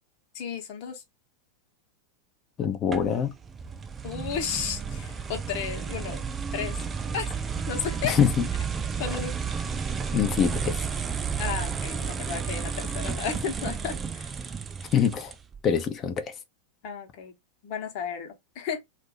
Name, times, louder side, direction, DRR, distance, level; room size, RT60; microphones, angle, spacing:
voice 1, 0.3-1.0 4.0-6.2 6.5-6.7 7.1-7.3 7.7-8.1 9.0-9.3 11.4-14.3 16.8-17.3 17.6-18.8, left 7 dB, 45° left, 1.0 m, -33 dB
voice 2, 2.6-3.3 8.0-8.4 10.1-10.8 14.9-15.3 15.6-16.3, left 8 dB, 30° left, 0.6 m, -24 dB
sound 1, 2.9-15.6, right 6 dB, 20° right, 0.4 m, -32 dB
2.7 x 2.5 x 3.9 m
figure-of-eight pair, 90°, 0 cm